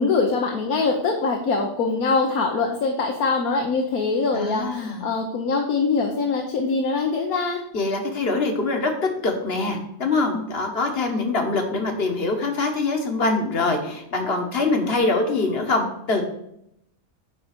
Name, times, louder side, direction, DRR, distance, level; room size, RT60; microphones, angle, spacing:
voice 1, 0.0-7.6, left 4 dB, 70° left, 1 dB, 1.4 m, -23 dB
voice 2, 4.3-5.1 7.7-8.9 9.2-16.2, left 3 dB, 40° left, 3 dB, 1.4 m, -24 dB
9.7 x 3.8 x 6.0 m, 0.78 s
omnidirectional pair, 1.6 m